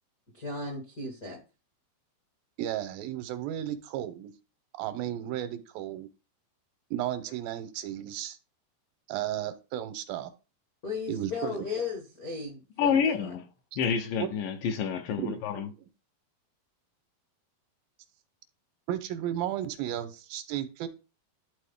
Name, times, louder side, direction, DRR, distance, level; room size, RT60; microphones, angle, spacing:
voice 1, 0.3-1.4 10.8-13.3, left 4 dB, 55° left, 1.0 m, -36 dB
voice 2, 2.6-4.3 4.8-6.1 6.9-8.4 9.1-10.3 11.1-11.6 14.2-14.3 15.2-15.6 18.9-20.9, right 12 dB, 85° right, 2.4 m, -34 dB
voice 3, 12.8-13.4 13.8-15.7, left 7 dB, 75° left, 2.3 m, -28 dB
11.5 x 3.8 x 3.5 m
omnidirectional pair, 4.2 m